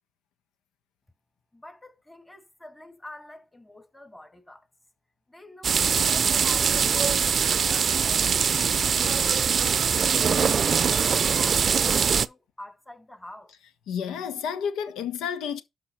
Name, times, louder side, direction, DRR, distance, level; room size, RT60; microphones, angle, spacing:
voice 1, 1.5-4.7 5.3-9.1 9.5-13.5, left 1 dB, 15° left, 2.3 m, -47 dB
sound 1, 5.6-12.3, right 6 dB, 50° right, 0.5 m, -22 dB
voice 2, 13.9-15.6, left 7 dB, 90° left, 1.2 m, -30 dB
12.0 x 5.3 x 4.4 m
cardioid pair, 90°, 0 cm